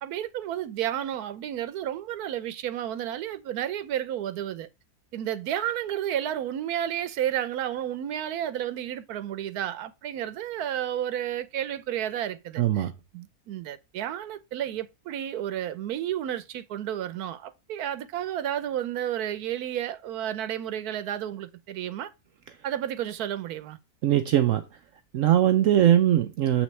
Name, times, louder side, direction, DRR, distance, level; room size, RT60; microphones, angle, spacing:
voice 1, 0.0-4.7 5.1-22.1 22.6-23.8, right 11 dB, 85° right, 1.2 m, -31 dB
voice 2, 12.6-12.9 24.0-24.6 25.1-26.6, right 11 dB, 65° right, 0.9 m, -21 dB
7.2 x 6.0 x 3.2 m
omnidirectional pair, 1.6 m